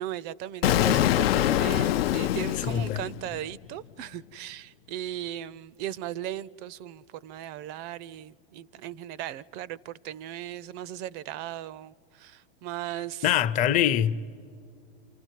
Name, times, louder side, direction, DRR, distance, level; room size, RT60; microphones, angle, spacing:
voice 1, 0.0-13.4, right 12 dB, 35° right, 0.4 m, -37 dB
Explosion, 0.6-3.5, left 12 dB, 75° left, 0.5 m, -24 dB
voice 2, 2.7-3.0 13.2-14.1, left 10 dB, 25° left, 0.6 m, -24 dB
29.0 x 28.5 x 4.6 m
hypercardioid pair, 130°, 30 cm